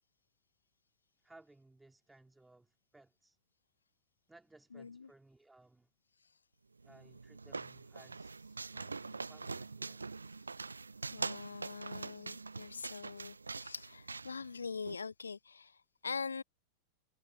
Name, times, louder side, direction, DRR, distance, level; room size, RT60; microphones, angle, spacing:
voice 1, 1.2-3.4 4.3-5.9 6.8-10.1, right 2 dB, 5° right, 4.5 m, -62 dB
voice 2, 4.7-5.1 11.1-16.4, left 5 dB, 75° left, 0.6 m, -43 dB
sound 1, 6.8-15.0, right 4 dB, 80° right, 1.0 m, -44 dB
figure-of-eight pair, 90°, 0 cm